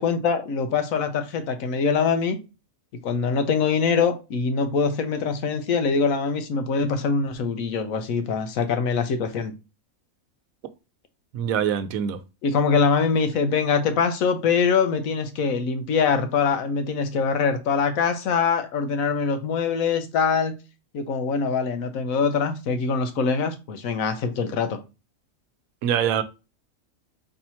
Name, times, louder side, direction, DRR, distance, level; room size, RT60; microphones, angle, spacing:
voice 1, 0.0-2.4 3.0-9.5 12.4-20.6 20.9-24.8, left 5 dB, 80° left, 1.2 m, -23 dB
voice 2, 11.3-12.2 25.8-26.2, right 9 dB, 85° right, 1.0 m, -24 dB
3.9 x 2.8 x 4.3 m
omnidirectional pair, 1.4 m